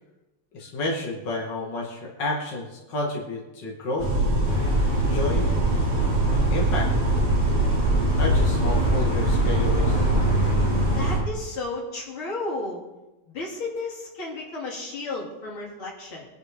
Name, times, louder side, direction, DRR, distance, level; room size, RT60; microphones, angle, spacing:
voice 1, 0.5-4.1 5.1-5.5 6.3-6.9 8.2-10.1, left 2 dB, 55° left, -3 dB, 2.9 m, -30 dB
sound 1, 4.0-11.2, right 1 dB, 85° right, 3.7 m, -22 dB
sound 2, 4.4-11.2, right 1 dB, 25° left, 3.7 m, -30 dB
voice 2, 10.9-12.8 13.3-16.3, left 3 dB, 75° left, -3 dB, 3.8 m, -33 dB
22.0 x 11.5 x 3.8 m, 1.0 s
omnidirectional pair, 2.3 m